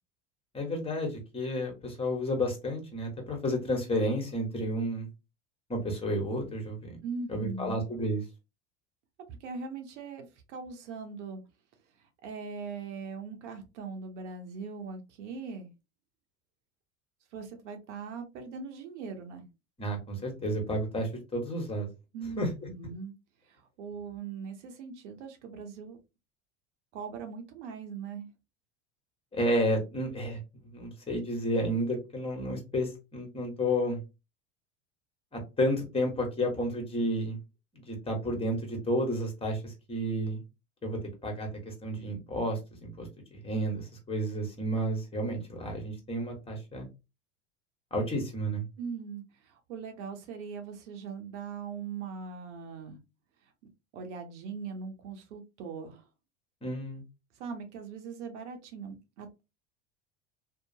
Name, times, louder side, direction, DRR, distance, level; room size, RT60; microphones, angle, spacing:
voice 1, 0.5-5.1 5.7-7.0 7.3-8.2 19.8-21.9 22.4-22.5 29.3-34.0 35.3-37.4 37.7-40.4 40.8-46.9 47.9-48.6 56.6-57.0, equal, 15° left, 2 dB, 1.3 m, -31 dB
voice 2, 7.0-7.8 9.3-11.4 12.0-15.7 17.3-19.5 22.1-23.1 23.5-26.0 26.9-28.3 48.8-53.0 53.9-56.1 57.4-59.4, right 5 dB, 70° right, 5 dB, 0.9 m, -40 dB
2.7 x 2.1 x 2.7 m, 0.27 s
hypercardioid pair, 85°, 36 cm